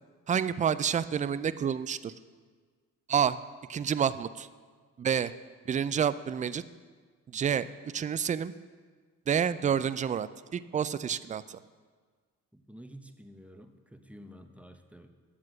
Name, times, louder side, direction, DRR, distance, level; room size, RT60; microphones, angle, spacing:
voice 1, 0.3-2.1 3.1-3.4 3.7-4.5 5.0-5.3 5.7-6.6 7.3-7.7 7.9-8.5 9.3-11.6, right 8 dB, 20° right, 15 dB, 0.3 m, -29 dB
voice 2, 12.5-15.1, equal, 5° right, 6 dB, 0.9 m, -50 dB
9.6 x 7.4 x 6.2 m, 1.5 s
hypercardioid pair, 50°, 43 cm